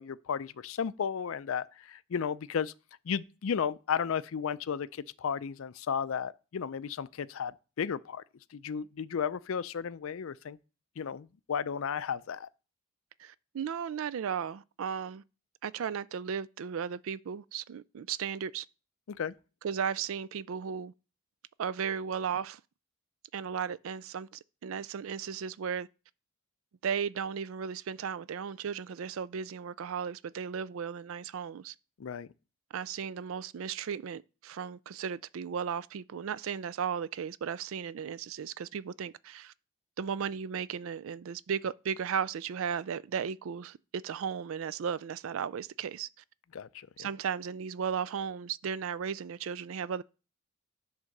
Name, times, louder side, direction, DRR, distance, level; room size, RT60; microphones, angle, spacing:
voice 1, 0.0-2.7 3.1-8.2 8.5-10.6 11.0-12.5 19.2-19.3 32.0-32.3 46.5-47.1, left 7 dB, 65° left, 0.4 m, -34 dB
voice 2, 13.2-15.2 15.6-18.7 19.6-20.9 21.6-22.6 23.3-25.9 26.8-31.7 32.7-39.5 40.0-46.1 47.0-50.0, right 7 dB, 65° right, 0.4 m, -35 dB
10.5 x 3.6 x 6.5 m
head